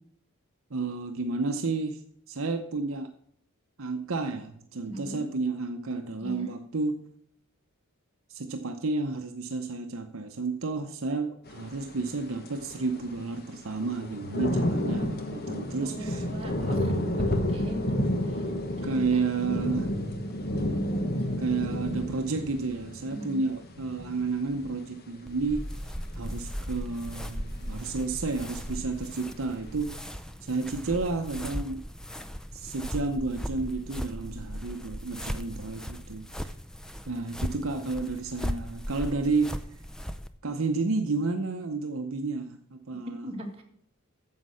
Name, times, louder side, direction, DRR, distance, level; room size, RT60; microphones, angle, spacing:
voice 1, 0.7-2.0 2.3-3.1 3.8-7.0 8.3-16.3 18.8-19.9 21.4-25.7 26.2-31.8 32.5-36.5 37.1-39.7 40.4-43.3, right 3 dB, 65° right, 6 dB, 0.8 m, -31 dB
voice 2, 4.8-5.3 6.2-6.5 14.5-15.0 15.8-18.5 18.8-19.2 23.1-23.4 43.2-43.6, equal, 25° right, 0 dB, 2.0 m, -39 dB
sound 1, 11.5-28.1 28.5-29.1, left 1 dB, 45° left, 1.3 m, -31 dB
sound 2, 25.3-40.3, equal, 5° left, 0.4 m, -37 dB
9.7 x 7.4 x 6.3 m, 0.68 s
head